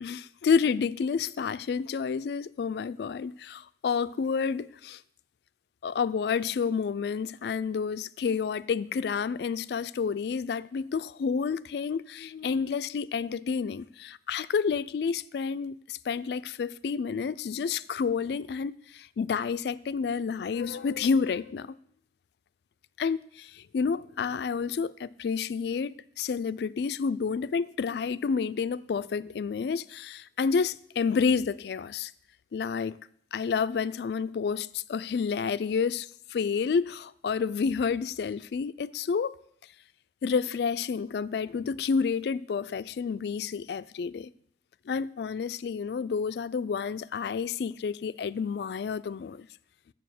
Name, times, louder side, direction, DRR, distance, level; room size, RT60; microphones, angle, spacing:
voice 1, 0.0-5.0 5.8-21.7 23.0-32.1 32.5-33.0 33.3-39.4 40.2-44.3 44.9-49.5, left 5 dB, 65° left, 0.3 m, -29 dB
7.0 x 6.9 x 7.6 m
head